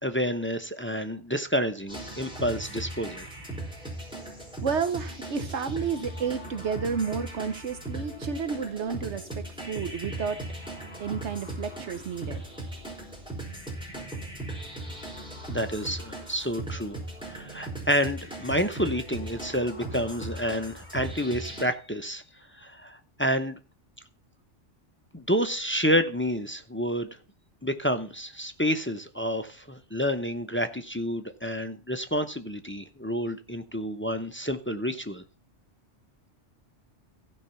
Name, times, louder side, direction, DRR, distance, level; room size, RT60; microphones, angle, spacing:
voice 1, 0.0-3.3 15.5-16.9 17.3-22.2 22.6-23.5 25.1-27.1 27.6-35.2, equal, 15° left, 8 dB, 0.6 m, -29 dB
sound 1, 1.9-21.6, right 2 dB, 5° right, 4.7 m, -38 dB
voice 2, 4.6-10.4 11.0-12.4, right 6 dB, 70° right, 10 dB, 1.2 m, -31 dB
15.5 x 5.3 x 5.6 m, 0.34 s
omnidirectional pair, 1.2 m